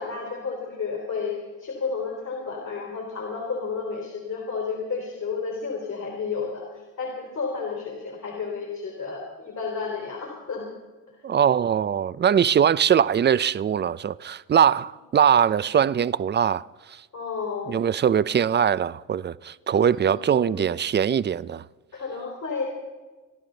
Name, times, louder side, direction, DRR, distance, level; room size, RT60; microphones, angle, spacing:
voice 1, 0.0-6.7 7.0-10.7 12.5-12.7 17.1-17.8 19.8-20.6 21.9-22.6, left 5 dB, 55° left, 3.8 m, -32 dB
voice 2, 11.2-17.0 17.7-21.6, right 8 dB, 30° right, 0.5 m, -22 dB
28.0 x 11.0 x 3.9 m
cardioid pair, 75°, 34 cm